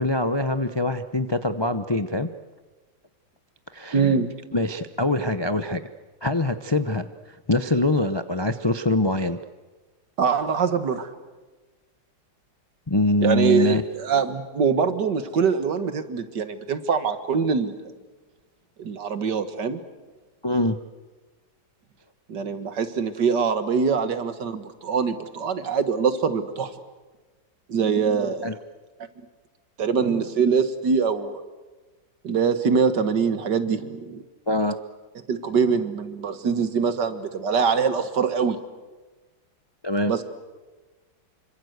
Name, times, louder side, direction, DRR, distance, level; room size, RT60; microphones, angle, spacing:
voice 1, 0.0-2.3 3.7-4.0 4.5-5.8 6.2-7.1 7.5-9.4 12.9-13.8 20.4-20.8 28.4-28.6 34.5-34.8 39.8-40.1, left 1 dB, 40° left, 9 dB, 0.3 m, -23 dB
voice 2, 3.9-4.3 10.2-11.1 13.2-17.8 18.8-19.8 22.3-26.7 27.7-28.5 29.8-31.4 32.2-34.3 35.3-38.6 40.1-40.2, right 6 dB, 65° right, 10 dB, 2.1 m, -23 dB
27.0 x 25.0 x 8.1 m, 1.3 s
omnidirectional pair, 2.0 m